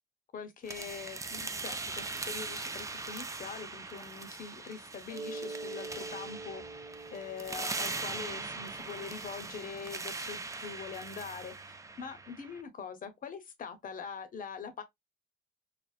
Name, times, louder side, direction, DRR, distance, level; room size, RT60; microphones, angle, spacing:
voice 1, 0.3-6.6 7.1-14.8, left 6 dB, 45° left, 0.7 m, -43 dB
sound 1, 0.7-12.6, right 3 dB, 15° right, 0.3 m, -40 dB
Mallet percussion, 5.1-9.5, right 3 dB, 65° right, 0.6 m, -45 dB
2.5 x 2.1 x 2.3 m
cardioid pair, 90°, 20 cm